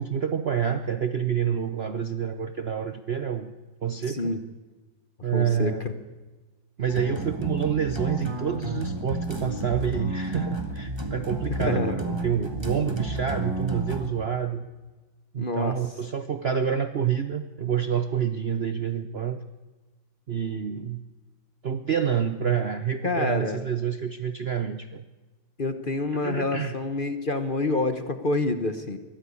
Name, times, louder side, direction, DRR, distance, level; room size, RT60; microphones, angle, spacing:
voice 1, 0.0-3.5 3.8-4.3 5.2-5.8 6.8-14.7 15.3-19.4 20.3-21.0 21.6-25.0 26.2-26.8, right 8 dB, 90° right, 9 dB, 0.5 m, -28 dB
voice 2, 4.1-4.4 5.3-5.9 11.6-12.0 15.4-15.8 23.0-23.6 25.6-29.0, left 2 dB, 35° left, 9 dB, 0.9 m, -27 dB
sound 1, 6.9-14.1, right 1 dB, 15° right, 1.9 m, -31 dB
23.0 x 15.5 x 8.4 m, 1.2 s
omnidirectional pair, 2.2 m